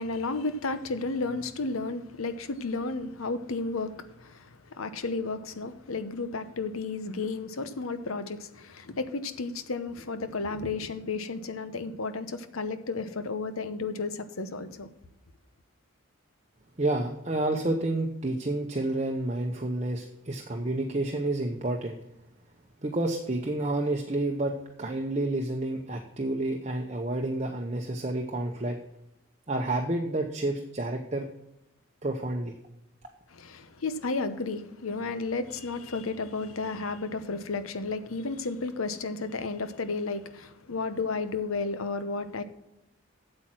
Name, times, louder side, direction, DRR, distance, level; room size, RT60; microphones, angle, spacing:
voice 1, 0.0-14.9 33.3-42.4, left 3 dB, 85° left, 0.9 m, -33 dB
voice 2, 16.8-22.0 22.8-28.8 29.5-31.3 32.0-32.5, right 2 dB, 30° right, 0.8 m, -29 dB
8.4 x 7.6 x 6.1 m
head